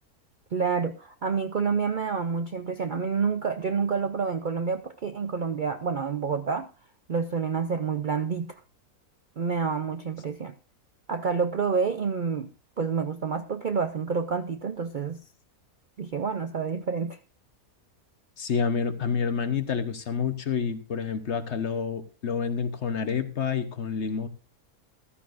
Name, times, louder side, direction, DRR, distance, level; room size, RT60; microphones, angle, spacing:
voice 1, 0.5-6.7 7.1-8.6 9.4-10.5 11.1-12.5 12.8-15.2 16.0-17.2, right 5 dB, 50° right, 0.6 m, -28 dB
voice 2, 18.4-24.3, left 6 dB, 50° left, 1.2 m, -28 dB
14.0 x 13.5 x 2.6 m
omnidirectional pair, 1.5 m